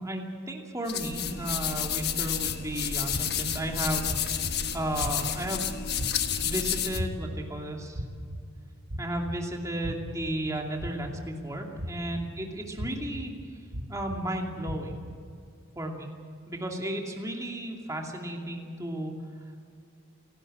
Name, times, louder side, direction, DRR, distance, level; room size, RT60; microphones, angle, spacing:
voice 1, 0.0-5.7 6.4-8.0 9.0-13.3 13.9-14.9 15.8-16.1 16.5-19.1, right 1 dB, 15° right, 1 dB, 2.6 m, -34 dB
sound 1, 0.9-7.0, left 8 dB, 55° left, 1.3 m, -30 dB
sound 2, 2.4-2.5 3.1-3.5 4.1-4.5 5.0-5.4 6.0-6.4 6.9-7.4 7.9-8.4 8.9-9.3 9.8-10.2 10.8-11.2 11.8-12.2 12.8-13.2 13.7-14.2 14.7-15.1, equal, 75° right, 1.8 m, -35 dB
29.5 x 12.0 x 8.8 m, 2.2 s
head